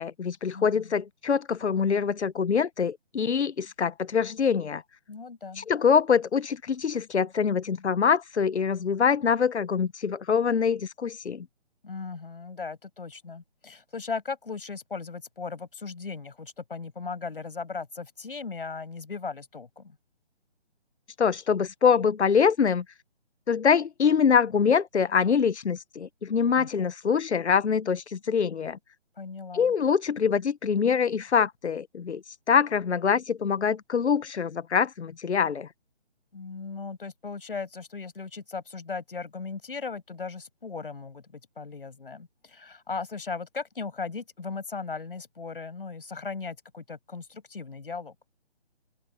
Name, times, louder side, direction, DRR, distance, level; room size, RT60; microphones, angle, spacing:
voice 1, 0.0-4.8 5.6-11.4 21.2-22.8 23.5-28.8 29.5-35.7, left 6 dB, 90° left, 1.0 m, -24 dB
voice 2, 0.5-0.9 5.1-5.7 11.8-20.0 26.5-26.8 29.2-29.7 36.3-48.1, left 4 dB, 55° left, 6.2 m, -37 dB
open air
hypercardioid pair, 180°, 33 cm